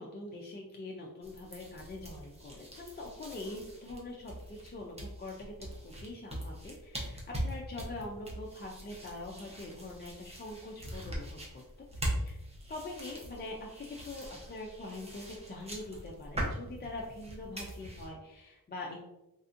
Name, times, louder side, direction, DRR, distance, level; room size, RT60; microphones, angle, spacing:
voice 1, 0.0-11.6 12.0-12.4 12.7-19.0, left 2 dB, 30° left, -2 dB, 0.4 m, -44 dB
sound 1, 1.2-18.1, equal, 15° right, 0.7 m, -42 dB
3.3 x 2.6 x 2.4 m, 0.94 s
wide cardioid pair, 125°, 35 cm